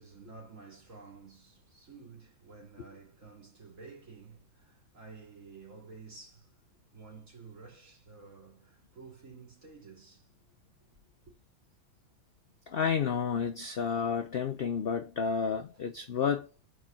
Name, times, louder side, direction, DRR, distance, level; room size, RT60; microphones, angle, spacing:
voice 1, 0.0-6.6 6.9-10.3 10.8-11.0, right 4 dB, 50° right, 2.9 m, -51 dB
voice 2, 12.7-16.5, left 6 dB, 75° left, 0.5 m, -31 dB
4.9 x 4.6 x 5.7 m
omnidirectional pair, 1.8 m